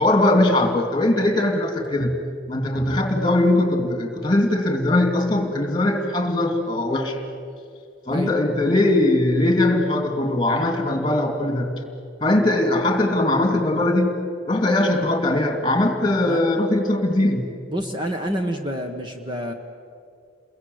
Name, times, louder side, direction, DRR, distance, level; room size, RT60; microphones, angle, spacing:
voice 1, 0.0-2.1 2.5-7.2 8.1-11.7 12.2-14.1 14.5-17.4, left 1 dB, 20° left, 4 dB, 2.7 m, -20 dB
voice 2, 17.7-19.5, equal, 25° right, 4 dB, 1.2 m, -28 dB
29.0 x 22.0 x 8.0 m, 2.4 s
head